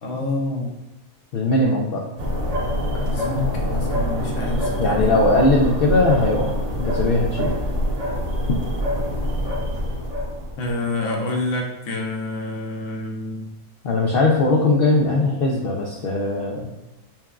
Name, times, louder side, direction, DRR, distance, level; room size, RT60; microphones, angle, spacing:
voice 1, 0.0-0.7 2.9-5.2 10.6-13.5, left 2 dB, 60° left, 1 dB, 1.0 m, -27 dB
voice 2, 1.3-2.0 4.8-7.5 13.8-16.7, left 2 dB, 80° left, -2 dB, 0.5 m, -20 dB
sound 1, 2.2-10.7, equal, 55° right, 0.4 m, -25 dB
5.7 x 2.3 x 2.4 m, 1.1 s
omnidirectional pair, 1.5 m